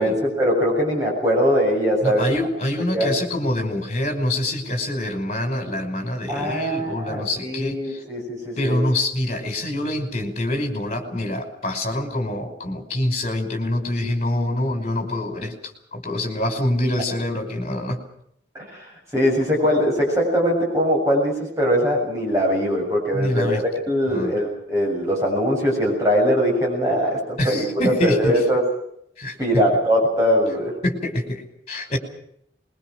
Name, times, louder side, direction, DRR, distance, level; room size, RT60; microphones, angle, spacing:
voice 1, 0.0-2.2 2.9-3.1 6.3-8.8 18.7-18.8 19.1-23.6 23.9-28.6 29.4-30.7, equal, 15° right, -2 dB, 7.3 m, -21 dB
voice 2, 2.0-8.0 8.6-15.5 15.9-18.0 23.1-23.6 24.1-24.3 27.4-28.4 29.2-29.4 30.8-32.0, left 1 dB, 35° left, 4 dB, 5.2 m, -25 dB
24.5 x 22.0 x 6.4 m, 0.72 s
head